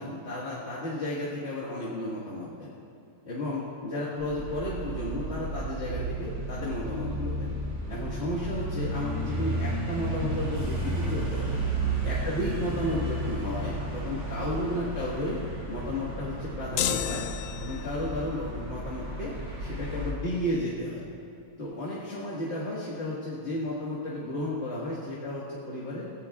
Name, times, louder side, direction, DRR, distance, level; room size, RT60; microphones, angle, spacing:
voice 1, 0.0-2.8 3.2-7.5 7.9-11.6 12.0-15.4 15.7-17.3 17.6-19.3 19.6-21.0 21.6-26.1, left 1 dB, 40° left, -7 dB, 1.9 m, -33 dB
sound 1, 4.2-20.1, right 2 dB, 90° right, 3.7 m, -33 dB
sound 2, 16.8-18.1, left 10 dB, 85° left, 0.7 m, -31 dB
23.5 x 15.5 x 2.4 m, 2.6 s
omnidirectional pair, 2.0 m